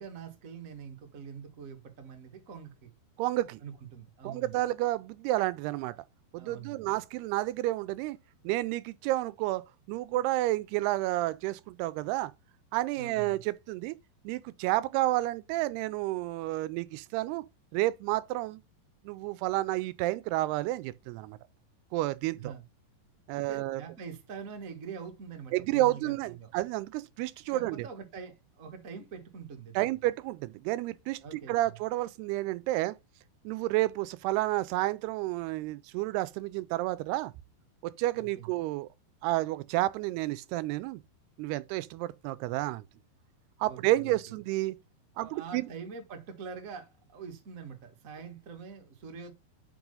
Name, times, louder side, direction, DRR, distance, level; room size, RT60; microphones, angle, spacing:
voice 1, 0.0-2.9 3.6-4.6 6.4-6.9 13.0-13.4 22.4-22.6 23.3-26.5 27.5-29.9 31.2-31.8 38.1-38.5 43.6-44.3 45.1-49.3, right 6 dB, 55° right, 0.8 m, -44 dB
voice 2, 3.2-3.6 4.2-6.0 6.3-8.2 8.4-9.6 9.9-12.3 12.7-14.0 14.2-17.4 17.7-18.6 19.1-21.4 21.9-22.5 23.3-23.8 25.5-27.9 29.8-33.0 33.5-37.3 37.8-38.9 39.2-41.0 41.4-42.8 43.6-44.8 45.2-45.7, right 17 dB, 85° right, 2.6 m, -30 dB
6.0 x 5.4 x 5.4 m
omnidirectional pair, 4.7 m